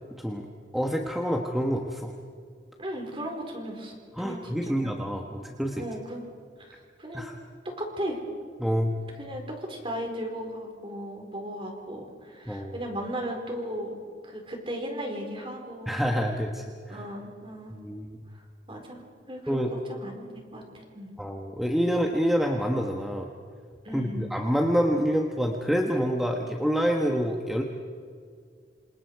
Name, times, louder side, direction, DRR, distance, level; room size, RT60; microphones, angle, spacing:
voice 1, 0.7-2.1 4.2-5.8 7.1-7.4 8.6-9.1 12.5-12.8 15.9-17.0 17.7-18.2 19.5-19.7 21.2-23.3 23.9-27.6, equal, ahead, 1 dB, 1.3 m, -27 dB
voice 2, 2.8-4.9 5.8-6.3 6.6-7.4 7.8-8.2 9.2-14.0 14.2-16.0 16.9-17.7 18.3-18.4 18.7-21.1 23.8-24.3, equal, 30° right, 2 dB, 4.6 m, -36 dB
28.0 x 27.5 x 4.8 m, 2.1 s
head